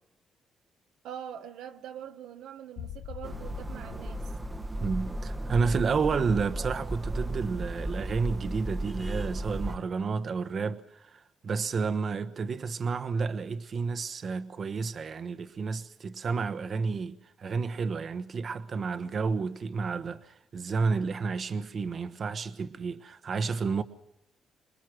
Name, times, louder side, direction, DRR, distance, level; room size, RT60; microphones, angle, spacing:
voice 1, 1.0-4.2, right 9 dB, 85° right, 1.3 m, -43 dB
sound 1, 2.8-8.2 8.5-8.6 9.1-9.2, left 11 dB, 80° left, 0.8 m, -46 dB
sound 2, 3.2-9.8, right 1 dB, 15° right, 1.1 m, -35 dB
voice 2, 4.8-23.8, right 5 dB, 50° right, 1.1 m, -31 dB
27.0 x 20.5 x 6.2 m
cardioid pair, 90°, 0 cm